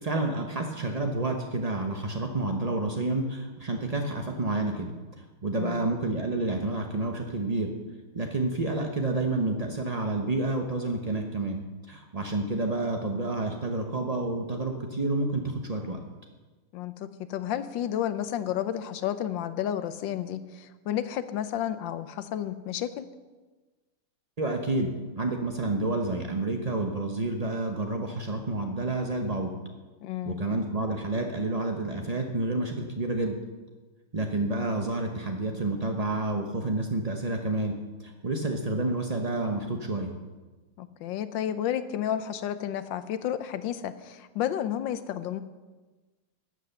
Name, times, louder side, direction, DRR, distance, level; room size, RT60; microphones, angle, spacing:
voice 1, 0.0-7.7 8.1-11.6 11.9-16.0 24.4-29.5 30.3-33.4 34.1-37.7 38.0-40.1, right 2 dB, 65° right, 3 dB, 0.3 m, -29 dB
voice 2, 5.5-5.9 16.7-23.1 30.0-30.4 40.8-45.4, left 10 dB, 70° left, 12 dB, 1.2 m, -31 dB
12.5 x 8.1 x 6.8 m, 1.3 s
omnidirectional pair, 2.3 m